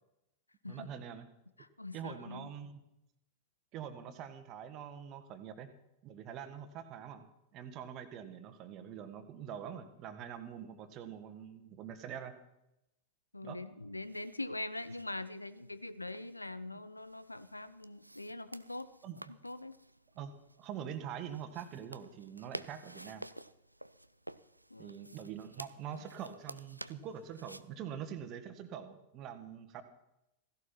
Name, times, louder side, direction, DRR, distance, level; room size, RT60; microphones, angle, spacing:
voice 1, 0.7-1.3 1.9-2.8 3.7-5.7 6.0-7.3 7.5-12.4 13.4-13.6 19.0-19.2 20.2-23.2 24.8-29.8, right 8 dB, 35° right, 9 dB, 1.8 m, -44 dB
voice 2, 1.6-2.5 13.3-18.9 19.4-19.8 24.7-25.0 25.9-26.0, left 2 dB, 85° left, 15 dB, 0.7 m, -43 dB
sound 1, 14.0-27.6, right 1 dB, 85° right, 0.5 m, -52 dB
16.5 x 16.0 x 4.4 m, 0.86 s
figure-of-eight pair, 90°, 0 cm